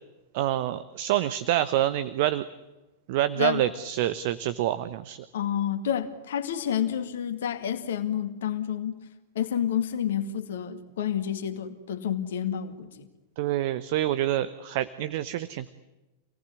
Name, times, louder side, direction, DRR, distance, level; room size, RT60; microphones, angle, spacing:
voice 1, 0.3-2.4 3.1-5.2 13.4-15.7, right 13 dB, 50° right, 13 dB, 1.0 m, -27 dB
voice 2, 5.3-9.0 9.3-13.1, left 9 dB, 60° left, 7 dB, 2.3 m, -29 dB
28.0 x 18.5 x 9.9 m, 1.1 s
figure-of-eight pair, 90°, 0 cm